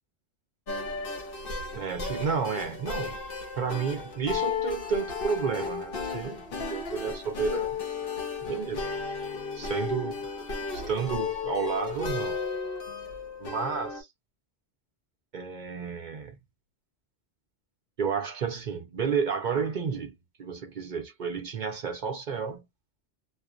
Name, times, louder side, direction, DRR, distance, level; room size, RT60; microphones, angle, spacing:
sound 1, 0.7-14.0, left 5 dB, 60° left, 1.0 m, -34 dB
voice 1, 1.7-3.2 3.5-7.7 8.4-8.8 9.5-10.3 10.7-12.4 13.4-14.1 15.3-16.4 18.0-22.7, right 6 dB, 50° right, 0.7 m, -31 dB
2.5 x 2.1 x 2.4 m
omnidirectional pair, 1.1 m